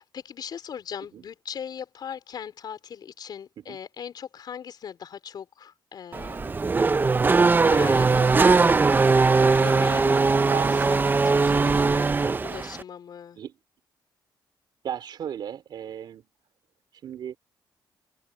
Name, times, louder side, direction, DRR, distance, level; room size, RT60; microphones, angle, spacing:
voice 1, 0.0-6.5 7.4-8.7 9.6-12.2 12.4-13.4, left 8 dB, 55° left, 4.0 m, -39 dB
Race car auto racing / Accelerating revving vroom, 6.1-12.8, right 4 dB, 25° right, 0.7 m, -20 dB
voice 2, 10.5-10.8 13.3-13.6 14.8-16.3 16.9-17.4, right 9 dB, 65° right, 3.2 m, -34 dB
open air
cardioid pair, 110°, 8 cm